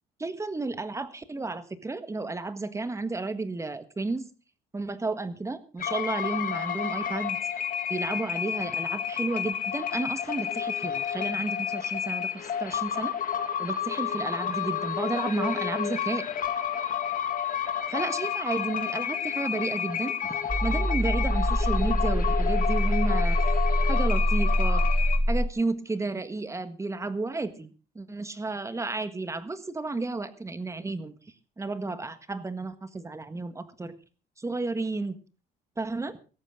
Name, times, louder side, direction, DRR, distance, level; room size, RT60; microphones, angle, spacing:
voice 1, 0.2-4.3 4.7-7.4 7.9-13.1 13.6-16.2 17.9-23.4 23.9-24.9 25.3-27.7 27.9-31.1 31.6-33.9 34.4-35.1 35.8-36.2, right 3 dB, 15° right, 11 dB, 1.6 m, -32 dB
sound 1, 5.8-25.2, left 9 dB, 55° left, 2.3 m, -30 dB
sound 2, 20.5-25.5, equal, ahead, 0.9 m, -24 dB
17.5 x 14.0 x 3.8 m, 0.35 s
cardioid pair, 110°, 17 cm